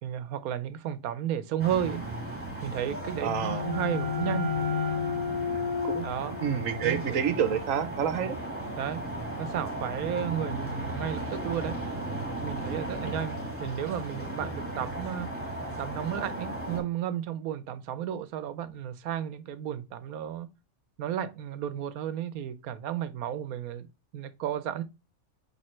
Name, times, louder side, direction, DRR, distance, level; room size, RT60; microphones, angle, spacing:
voice 1, 0.0-2.0 2.6-4.5 6.0-6.4 6.8-7.1 8.8-9.0 9.4-11.8 12.4-15.3 15.8-20.5 21.0-23.9 24.1-24.8, right 10 dB, 90° right, 1.2 m, -33 dB
sound 1, 1.6-16.8, right 1 dB, 10° right, 2.9 m, -36 dB
sound 2, 2.9-8.4, left 5 dB, 40° left, 2.8 m, -33 dB
voice 2, 3.2-3.7 5.8-6.1 6.4-8.4, right 8 dB, 70° right, 1.2 m, -28 dB
8.6 x 3.6 x 3.1 m
omnidirectional pair, 1.5 m